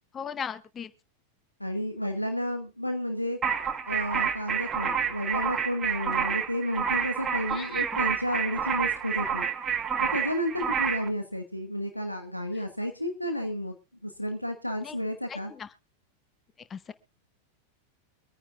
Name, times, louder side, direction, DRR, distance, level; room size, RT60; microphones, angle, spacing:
voice 1, 0.1-0.9 7.5-8.0 12.5-12.6 14.8-15.0 15.3-15.7 16.7-16.9, left 7 dB, 20° left, 14 dB, 0.9 m, -38 dB
voice 2, 1.6-3.4 3.9-9.5 10.0-13.8 14.0-15.5, equal, 90° left, 5 dB, 1.2 m, -31 dB
sound 1, 3.4-11.1, right 7 dB, 20° right, 1.5 m, -29 dB
24.0 x 9.8 x 2.5 m, 0.28 s
figure-of-eight pair, 90°, 0 cm